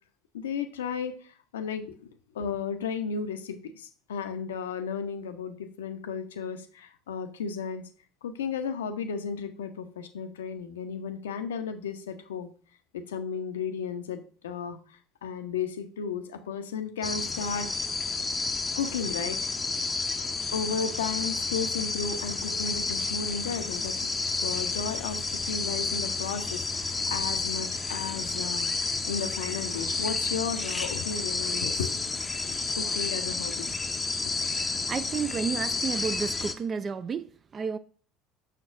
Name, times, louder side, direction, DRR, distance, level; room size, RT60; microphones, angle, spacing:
voice 1, 0.3-2.0 2.3-7.9 8.2-12.5 12.9-14.8 15.2-17.7 18.8-19.4 20.5-24.0 24.4-31.9 32.7-33.7 34.2-34.3, left 6 dB, 70° left, 0.5 m, -34 dB
sound 1, 17.0-36.5, left 4 dB, 20° left, 0.6 m, -31 dB
voice 2, 34.5-37.8, right 6 dB, 30° right, 0.3 m, -32 dB
6.6 x 6.0 x 2.5 m
figure-of-eight pair, 65°, 0 cm